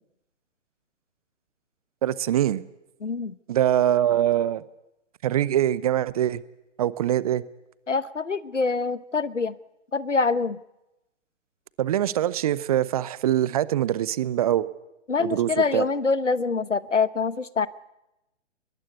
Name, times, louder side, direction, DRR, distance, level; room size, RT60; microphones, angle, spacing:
voice 1, 2.0-2.6 3.5-4.6 5.2-6.4 6.8-7.4 11.8-14.7 15.2-15.8, right 11 dB, 30° right, 19 dB, 0.8 m, -23 dB
voice 2, 3.0-3.3 7.9-9.5 9.9-10.6 15.1-17.7, left 4 dB, 80° left, 17 dB, 1.2 m, -25 dB
23.0 x 21.0 x 8.2 m, 0.89 s
figure-of-eight pair, 125°, 36 cm